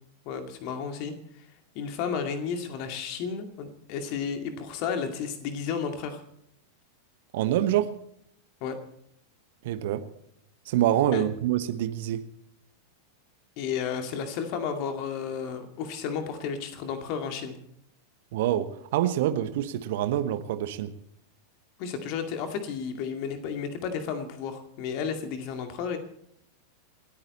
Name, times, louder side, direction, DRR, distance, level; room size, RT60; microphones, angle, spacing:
voice 1, 0.2-1.5 1.7-6.2 8.6-8.8 11.1-11.2 13.6-17.6 21.8-26.0, left 6 dB, 45° left, 6 dB, 2.3 m, -32 dB
voice 2, 7.3-7.9 9.6-10.1 10.7-12.3 18.3-20.9, right 12 dB, 55° right, 12 dB, 1.1 m, -26 dB
28.0 x 9.5 x 4.2 m, 0.72 s
figure-of-eight pair, 90°, 0 cm